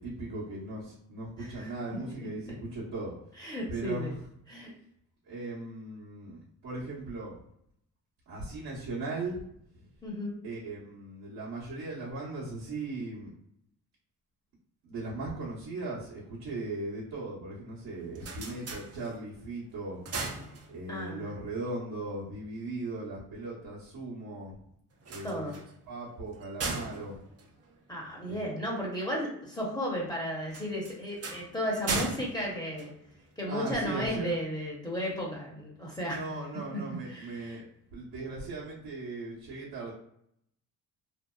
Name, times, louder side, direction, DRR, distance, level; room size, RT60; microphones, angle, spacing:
voice 1, 0.0-3.1 3.7-4.1 5.3-7.4 8.3-9.4 10.4-13.3 14.8-20.0 20.7-24.5 25.1-25.6 25.9-27.2 28.3-28.5 33.5-34.4 36.1-37.6 37.9-39.9, right 2 dB, 65° right, -8 dB, 1.1 m, -38 dB
voice 2, 1.4-2.1 2.5-2.6 3.4-4.1 4.5-4.7 10.0-10.3 20.9-21.2 25.2-25.6 27.9-32.9 33.4-36.2 36.9-37.6, equal, 10° left, -4 dB, 0.9 m, -34 dB
sound 1, 17.9-19.4 19.8-21.1 24.9-28.4 30.5-33.5, right 3 dB, 40° right, 0.6 m, -38 dB
2.7 x 2.1 x 2.3 m, 0.73 s
supercardioid pair, 55°, 40 cm